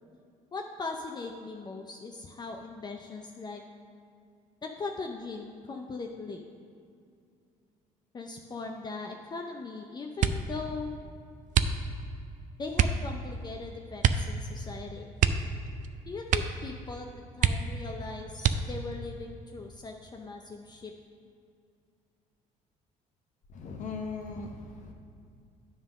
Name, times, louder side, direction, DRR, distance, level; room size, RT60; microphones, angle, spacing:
voice 1, 0.5-3.6 4.6-6.4 8.1-11.0 12.6-15.1 16.1-20.9, left 3 dB, 30° left, 2 dB, 0.5 m, -39 dB
sound 1, 10.2-10.6 11.5-12.1 12.7-13.1 14.0-14.3 14.6-14.7 15.1-15.9 16.2-16.7 17.0-17.1 17.4-17.9 18.4-18.9 19.6-20.3 20.6-21.0, right 8 dB, 60° right, 0.4 m, -27 dB
voice 2, 23.5-24.9, left 4 dB, 55° left, 2 dB, 1.0 m, -38 dB
9.5 x 3.7 x 6.4 m, 2.3 s
cardioid pair, 95°, 15 cm